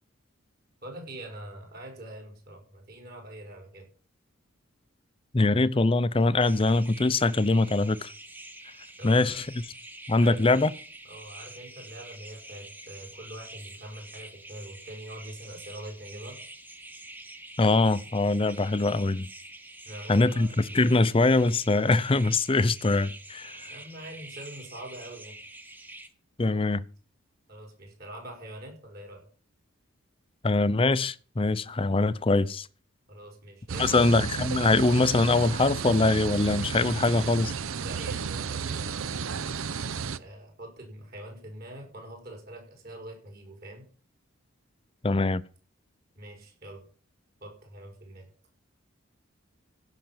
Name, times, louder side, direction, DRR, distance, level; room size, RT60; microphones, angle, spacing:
voice 1, 0.8-3.9 9.0-9.4 10.2-10.6 11.0-16.4 19.9-20.5 23.7-25.3 27.5-29.2 33.1-34.1 37.8-39.6 40.2-43.8 46.2-46.8 47.4-48.3, right 1 dB, 45° right, 5.6 m, -44 dB
voice 2, 5.3-8.1 9.0-9.5 10.1-10.7 17.6-19.3 20.1-23.7 26.4-26.8 30.4-32.7 33.8-37.5 45.0-45.4, left 3 dB, 25° left, 0.5 m, -23 dB
sound 1, 6.4-26.1, right 1 dB, 10° right, 1.2 m, -46 dB
sound 2, 33.7-40.2, right 6 dB, 75° right, 0.7 m, -33 dB
16.0 x 5.8 x 7.8 m
head